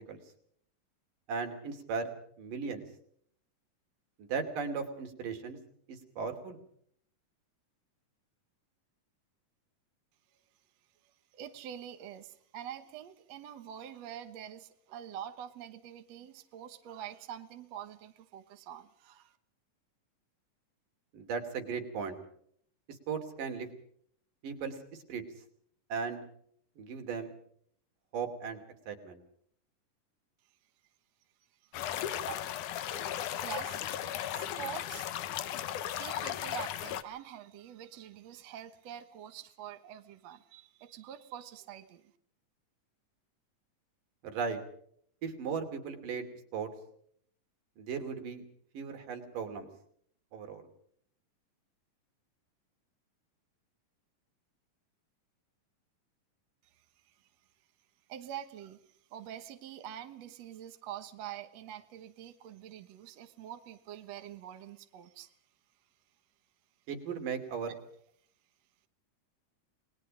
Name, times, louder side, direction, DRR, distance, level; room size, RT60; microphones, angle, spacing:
voice 1, 1.3-2.8 4.2-5.6 5.9-6.6 21.1-22.2 22.9-23.7 24.4-25.2 25.9-26.2 26.8-27.3 28.1-29.2 44.2-44.6 45.2-46.3 46.5-46.7 47.8-48.4 48.7-49.7 50.3-50.6 66.9-67.7, right 5 dB, 75° right, 5 dB, 4.4 m, -37 dB
voice 2, 11.3-19.4 31.6-31.8 32.2-32.5 32.9-42.1 56.8-57.2 58.1-58.8 59.1-65.3, right 10 dB, 60° right, 8 dB, 2.2 m, -46 dB
sound 1, 31.7-37.0, left 11 dB, 75° left, 2.5 m, -36 dB
28.5 x 20.5 x 5.1 m, 0.65 s
omnidirectional pair, 3.8 m